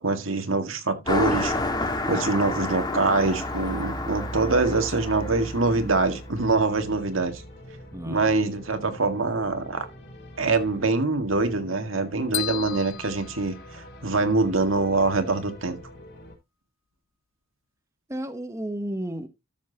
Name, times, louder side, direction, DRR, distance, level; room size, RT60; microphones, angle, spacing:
voice 1, 0.0-7.4 8.1-9.9 10.4-15.8, right 3 dB, 80° right, 1.8 m, -24 dB
Car passing by, 1.0-6.9, left 2 dB, 20° left, 1.7 m, -30 dB
sound 1, 1.8-16.3, left 1 dB, 55° left, 4.3 m, -45 dB
voice 2, 7.9-8.3 18.1-19.3, right 1 dB, 15° right, 1.0 m, -32 dB
sound 2, 12.3-14.3, left 15 dB, 90° left, 0.7 m, -34 dB
13.0 x 7.3 x 2.8 m
head